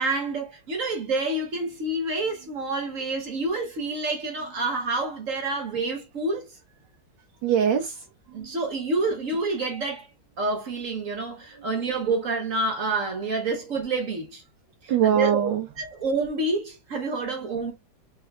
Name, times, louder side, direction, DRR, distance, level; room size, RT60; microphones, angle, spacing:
voice 1, 0.0-6.5 8.3-10.1 10.4-14.4 14.8-15.5 15.8-17.7, right 3 dB, 50° right, 1.1 m, -28 dB
voice 2, 7.4-8.6 11.5-11.6 14.9-15.7 17.4-17.5, right 9 dB, 70° right, 1.5 m, -24 dB
4.5 x 3.4 x 2.3 m
omnidirectional pair, 2.1 m